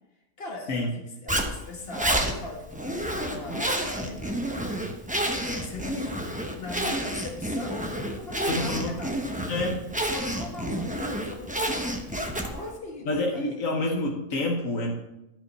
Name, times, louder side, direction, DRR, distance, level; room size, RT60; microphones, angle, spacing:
voice 1, 0.4-4.3 5.2-9.2 10.1-12.0 12.4-13.5, left 2 dB, 45° left, 0 dB, 1.9 m, -39 dB
Zipper (clothing), 1.3-12.7, right 1 dB, 5° right, 0.8 m, -30 dB
voice 2, 8.5-9.0 9.5-9.8 13.0-15.0, left 2 dB, 75° left, 0 dB, 1.4 m, -28 dB
12.0 x 5.2 x 5.5 m, 0.90 s
omnidirectional pair, 1.4 m